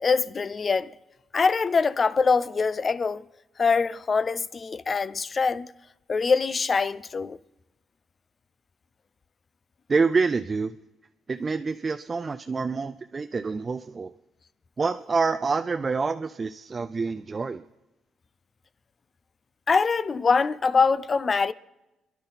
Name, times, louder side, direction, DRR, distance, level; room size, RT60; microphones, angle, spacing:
voice 1, 0.0-0.9 1.3-3.3 3.6-5.7 6.1-7.4 19.7-21.5, left 5 dB, 40° left, 0.5 m, -23 dB
voice 2, 9.9-10.7 11.3-14.1 14.8-17.6, right 4 dB, 35° right, 0.4 m, -27 dB
28.0 x 10.5 x 4.1 m
cardioid pair, 85°, 0 cm